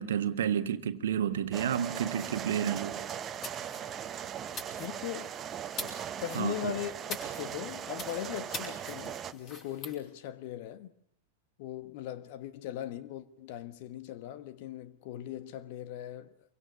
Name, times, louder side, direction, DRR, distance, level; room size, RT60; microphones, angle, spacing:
voice 1, 0.0-3.0 6.3-6.7, right 9 dB, 60° right, 1.5 m, -30 dB
sound 1, 1.5-9.3, right 9 dB, 25° right, 1.2 m, -39 dB
sound 2, 2.1-10.0, left 3 dB, 30° left, 6.7 m, -46 dB
voice 2, 4.8-5.3 5.8-5.9 6.2-10.9 11.6-16.3, left 12 dB, 50° left, 1.4 m, -39 dB
27.5 x 24.0 x 6.9 m
figure-of-eight pair, 90°, 0 cm